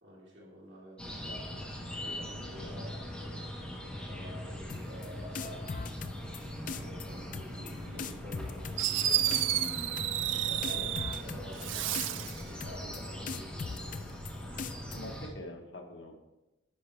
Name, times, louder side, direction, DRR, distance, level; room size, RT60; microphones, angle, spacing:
voice 1, 0.0-3.1 4.1-5.6 5.9-6.3 6.7-9.7 10.3-14.0, equal, 65° right, -5 dB, 2.7 m, -49 dB
sound 1, 1.0-15.3, left 1 dB, 5° left, 1.2 m, -41 dB
voice 2, 2.2-2.8 5.5-5.6 6.1-6.3 14.9-16.2, left 1 dB, 85° left, 3 dB, 1.1 m, -46 dB
sound 2, 4.7-5.1 5.4-6.4 6.7-7.1 7.3-7.7 8.0-9.0 9.3-9.7 10.0-10.3 10.6-11.7 11.9-12.3 12.6-13.0 13.3-14.3 14.6-15.0, left 5 dB, 45° left, 0.4 m, -39 dB
Fireworks, 8.4-8.5 8.8-11.2 11.6-12.4, right 12 dB, 90° right, 0.4 m, -31 dB
10.0 x 5.7 x 3.3 m, 1.0 s
head